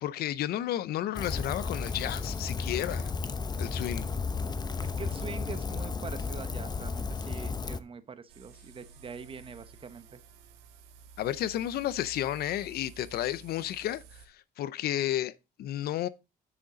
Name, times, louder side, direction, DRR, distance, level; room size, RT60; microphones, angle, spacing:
voice 1, 0.0-3.1 3.6-4.1 11.2-15.3 15.6-16.1, left 12 dB, 65° left, 0.6 m, -32 dB
Rain, 1.1-7.8, left 4 dB, 25° left, 0.8 m, -33 dB
voice 2, 4.8-10.2, right 6 dB, 30° right, 1.0 m, -44 dB
sound 1, 8.3-14.3, right 5 dB, 90° right, 1.5 m, -52 dB
10.0 x 6.5 x 3.9 m
cardioid pair, 110°, 17 cm